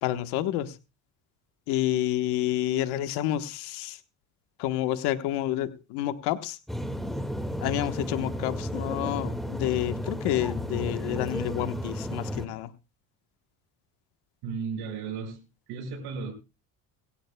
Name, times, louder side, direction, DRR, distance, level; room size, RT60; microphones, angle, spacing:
voice 1, 0.0-0.8 1.7-4.0 4.6-6.6 7.6-12.7, left 13 dB, 90° left, 10 dB, 1.3 m, -29 dB
sound 1, 6.7-12.5, equal, ahead, 1.9 m, -33 dB
voice 2, 14.4-15.4 15.7-16.3, right 5 dB, 80° right, 2 dB, 6.4 m, -34 dB
23.0 x 13.0 x 2.3 m, 0.29 s
cardioid pair, 100°, 38 cm